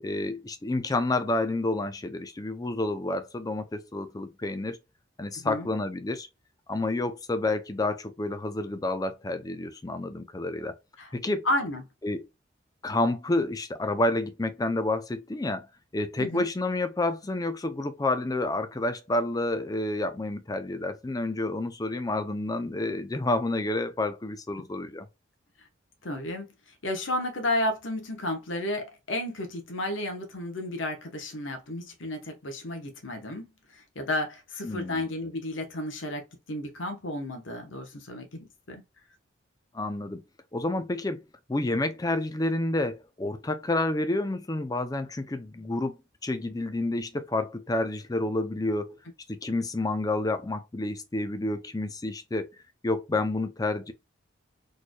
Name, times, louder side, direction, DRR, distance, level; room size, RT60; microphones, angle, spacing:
voice 1, 0.0-4.8 5.2-6.3 6.7-10.7 11.1-11.5 12.0-12.2 12.8-15.7 15.9-25.1 34.6-35.0 39.7-40.2 40.5-41.2 41.5-46.0 46.2-49.0 49.3-52.5 52.8-53.9, left 2 dB, 20° left, 0.4 m, -29 dB
voice 2, 5.3-5.7 11.0-11.1 11.4-11.8 16.2-16.4 25.6-25.7 26.0-26.5 26.8-38.8, left 1 dB, 75° left, 0.9 m, -32 dB
4.2 x 3.2 x 2.2 m
head